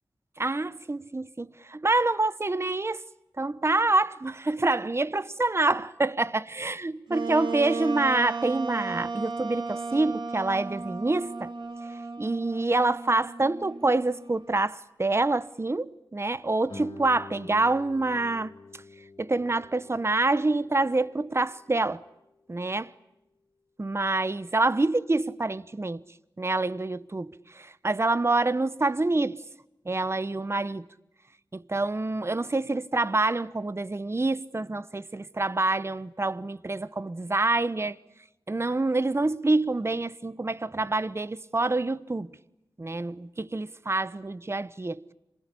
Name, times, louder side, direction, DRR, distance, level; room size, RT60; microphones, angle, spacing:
voice 1, 0.4-3.0 3.4-11.5 11.9-18.5 19.2-22.0 22.5-22.9 23.8-26.0 26.4-29.4 29.8-30.8 31.5-38.0 38.5-42.3 42.8-45.0, right 2 dB, 30° right, 0.9 m, -27 dB
Wind instrument woodwind instrument, 7.1-14.5, right 4 dB, 65° right, 2.7 m, -35 dB
Guitar, 16.7-22.1, left 3 dB, 80° left, 4.4 m, -48 dB
27.5 x 20.5 x 10.0 m
wide cardioid pair, 55°, 9 cm